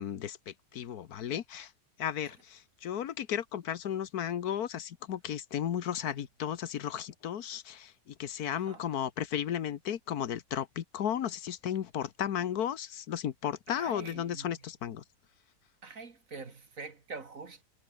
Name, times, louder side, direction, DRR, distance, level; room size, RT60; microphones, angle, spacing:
voice 1, 0.0-1.7 2.0-15.0, left 9 dB, 65° left, 1.5 m, -34 dB
voice 2, 13.7-14.5 15.8-17.6, right 4 dB, 50° right, 2.5 m, -45 dB
omnidirectional pair, 1.8 m